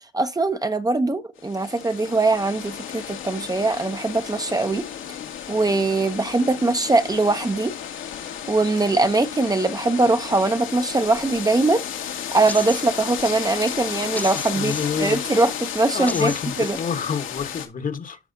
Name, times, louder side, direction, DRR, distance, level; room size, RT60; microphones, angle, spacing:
voice 1, 0.1-4.8 5.5-7.7 8.5-11.8 12.3-16.3 16.6-16.8, right 2 dB, 20° right, 0.8 m, -21 dB
sound 1, 1.4-17.7, left 9 dB, 80° left, 1.9 m, -33 dB
sound 2, 12.5-13.1 14.1-15.2 16.1-16.7, left 2 dB, 10° left, 0.4 m, -35 dB
voice 2, 14.5-15.2 15.9-18.2, left 6 dB, 45° left, 1.3 m, -27 dB
12.5 x 4.8 x 2.7 m
cardioid pair, 90°, 20 cm